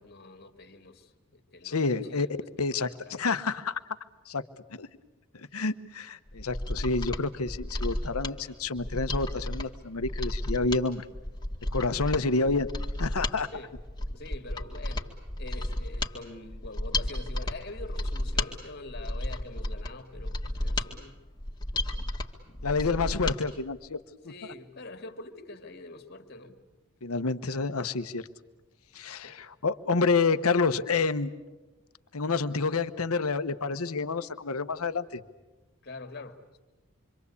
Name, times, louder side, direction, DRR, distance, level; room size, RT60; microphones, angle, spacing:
voice 1, 0.0-2.3 2.6-3.1 13.5-13.7 14.1-15.1 15.4-21.2 22.5-23.2 24.3-26.6 29.2-29.4 35.8-36.6, left 2 dB, 50° left, 7 dB, 2.2 m, -45 dB
voice 2, 1.6-2.3 2.6-3.8 4.3-4.4 4.7-4.9 5.3-11.1 11.7-12.7 13.0-13.5 22.6-24.3 27.0-28.3 28.9-31.3 32.1-35.2, left 4 dB, 90° left, 10 dB, 1.1 m, -29 dB
Mechanisms, 6.3-23.4 23.7-23.8, left 1 dB, 20° left, 2.0 m, -33 dB
26.5 x 25.0 x 8.5 m, 1.1 s
head